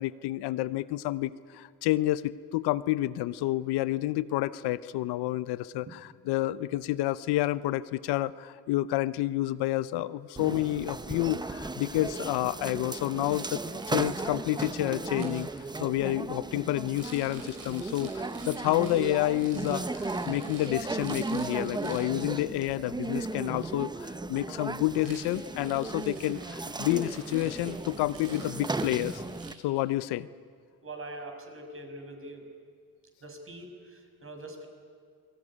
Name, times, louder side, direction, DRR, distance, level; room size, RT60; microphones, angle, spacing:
voice 1, 0.0-13.6 13.9-15.5 15.8-29.2 29.6-30.3, left 15 dB, 85° left, 16 dB, 0.8 m, -29 dB
sound 1, 10.4-29.5, right 3 dB, 10° right, 0.8 m, -36 dB
Rattle, 12.9-15.4 16.8-22.2 24.9-29.9, right 4 dB, 60° right, 6.4 m, -50 dB
voice 2, 30.8-32.5 33.2-34.7, right 1 dB, 35° right, 4 dB, 6.0 m, -43 dB
27.0 x 19.5 x 9.9 m, 2.1 s
cardioid pair, 90°, 38 cm